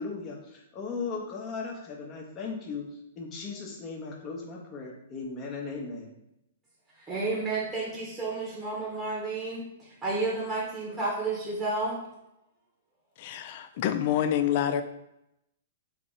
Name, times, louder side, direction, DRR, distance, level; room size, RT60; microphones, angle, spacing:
voice 1, 0.0-6.2, left 4 dB, 25° left, 0.8 m, -37 dB
voice 2, 7.0-12.0, right 3 dB, 15° right, 0.9 m, -31 dB
voice 3, 13.2-14.8, left 10 dB, 50° left, 0.3 m, -27 dB
3.6 x 2.0 x 3.8 m
hypercardioid pair, 125°, 0 cm